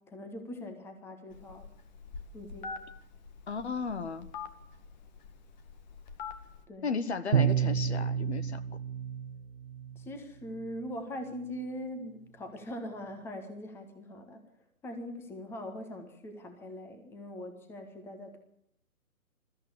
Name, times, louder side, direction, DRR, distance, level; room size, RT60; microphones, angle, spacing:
voice 1, 0.0-1.7 2.3-2.8 6.7-6.9 9.9-14.4 14.8-18.4, left 1 dB, 5° left, 6 dB, 1.5 m, -42 dB
Telephone, 1.3-6.6, left 5 dB, 30° left, 1.9 m, -45 dB
voice 2, 3.5-4.3 6.8-8.6, left 5 dB, 50° left, 12 dB, 1.6 m, -34 dB
Bowed string instrument, 7.3-10.1, right 8 dB, 45° right, 1.1 m, -30 dB
22.0 x 14.0 x 8.6 m, 0.76 s
figure-of-eight pair, 135°, 43 cm